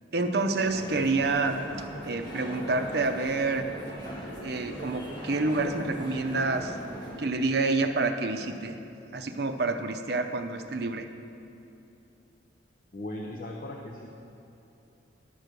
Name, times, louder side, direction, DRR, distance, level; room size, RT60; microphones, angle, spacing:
voice 1, 0.1-3.6 4.4-6.8 7.2-8.8 9.1-11.1, right 3 dB, 55° right, 7 dB, 0.6 m, -28 dB
sound 1, 0.6-7.2, equal, 25° left, 1.7 m, -39 dB
voice 2, 12.9-14.1, left 1 dB, 50° left, 0 dB, 0.7 m, -38 dB
11.0 x 6.1 x 6.7 m, 2.8 s
head